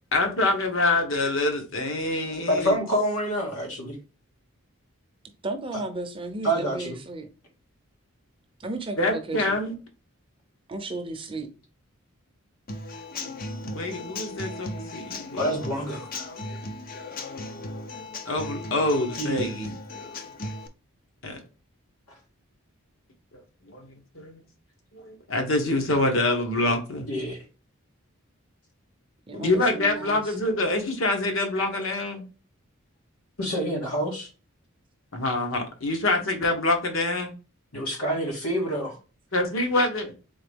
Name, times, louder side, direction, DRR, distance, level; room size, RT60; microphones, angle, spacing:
voice 1, 0.1-2.8 9.0-9.7 13.7-15.5 18.3-19.7 21.2-21.4 23.7-23.9 24.1-24.4 24.9-27.1 29.3-32.2 35.1-37.3 39.3-40.1, left 2 dB, 65° left, 1.2 m, -25 dB
voice 2, 2.5-4.0 6.4-7.0 15.4-16.1 19.2-19.5 27.1-27.4 33.4-34.3 37.7-39.0, equal, 90° left, 2.2 m, -27 dB
voice 3, 5.4-7.3 8.6-9.6 10.7-11.5 29.3-30.3 36.2-36.3, right 2 dB, 25° right, 0.6 m, -34 dB
Human voice / Acoustic guitar / Drum, 12.7-20.7, left 2 dB, 40° left, 0.5 m, -36 dB
3.9 x 3.8 x 3.4 m
head